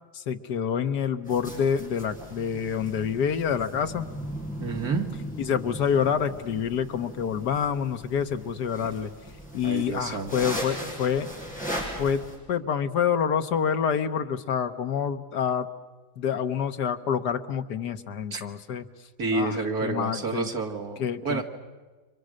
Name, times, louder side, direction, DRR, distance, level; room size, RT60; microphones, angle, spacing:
voice 1, 0.1-4.1 5.4-9.1 9.5-11.3 12.0-15.7 16.2-18.9 19.3-20.5 21.0-21.4, left 7 dB, 90° left, 9 dB, 1.7 m, -27 dB
sound 1, 1.3-12.4, equal, 5° left, 6.9 m, -38 dB
voice 2, 4.6-5.1 9.6-10.3 18.3-18.4 19.2-21.4, right 3 dB, 65° right, 4 dB, 2.6 m, -29 dB
30.0 x 25.5 x 6.5 m, 1.3 s
omnidirectional pair, 1.7 m